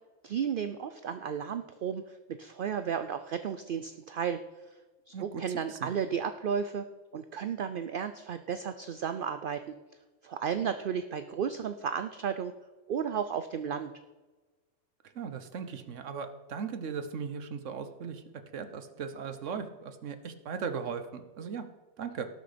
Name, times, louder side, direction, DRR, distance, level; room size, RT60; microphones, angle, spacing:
voice 1, 0.2-2.0 2.4-4.4 5.1-6.9 7.1-9.6 10.2-12.5 12.9-13.9, right 7 dB, 55° right, 10 dB, 0.6 m, -33 dB
voice 2, 5.1-5.9 15.1-18.2 18.5-21.7 22.0-22.3, right 6 dB, 75° right, 9 dB, 1.3 m, -38 dB
18.0 x 6.2 x 5.1 m, 1.2 s
omnidirectional pair, 1.3 m